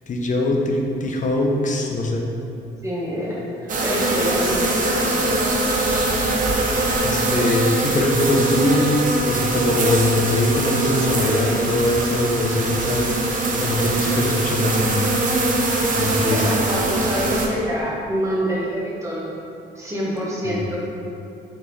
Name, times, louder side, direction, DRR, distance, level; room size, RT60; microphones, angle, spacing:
voice 1, 0.1-2.3 7.0-15.2 16.0-16.6 20.4-20.6, left 1 dB, 40° left, 0 dB, 0.6 m, -22 dB
voice 2, 2.8-5.4 16.3-19.3 19.7-20.9, equal, 15° right, -6 dB, 1.0 m, -26 dB
sound 1, 3.7-17.5, right 2 dB, 40° right, 0.6 m, -22 dB
3.7 x 3.5 x 3.0 m, 2.7 s
cardioid pair, 90°, 20 cm